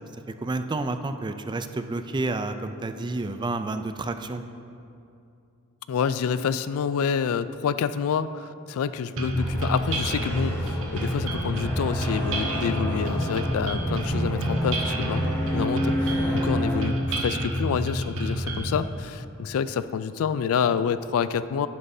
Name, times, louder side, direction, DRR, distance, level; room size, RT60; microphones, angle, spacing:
voice 1, 0.4-4.4, right 2 dB, 20° right, 9 dB, 0.3 m, -30 dB
voice 2, 5.9-21.7, left 7 dB, 70° left, 14 dB, 0.3 m, -28 dB
sound 1, 9.2-18.8, right 1 dB, 65° right, 1.3 m, -29 dB
sound 2, 9.4-16.8, equal, 10° left, 1.6 m, -30 dB
11.0 x 10.0 x 2.7 m, 2.6 s
head